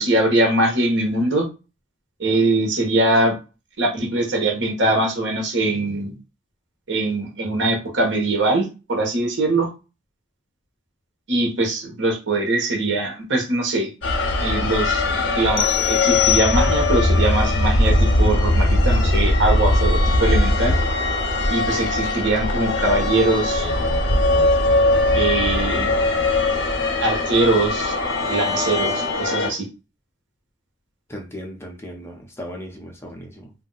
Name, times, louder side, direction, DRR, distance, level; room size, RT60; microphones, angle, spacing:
voice 1, 0.0-1.5 2.2-3.3 3.8-6.1 6.9-9.7 11.3-13.9 14.4-20.7 21.5-23.7 25.1-25.9 27.0-27.9 28.2-29.7, right 2 dB, 70° right, 1 dB, 1.2 m, -22 dB
sound 1, 14.0-29.5, left 2 dB, 60° left, 0.8 m, -20 dB
sound 2, 15.6-17.1, left 14 dB, 80° left, 0.4 m, -23 dB
voice 2, 31.1-33.5, equal, 15° left, 1 dB, 0.7 m, -36 dB
2.6 x 2.2 x 3.9 m, 0.30 s
head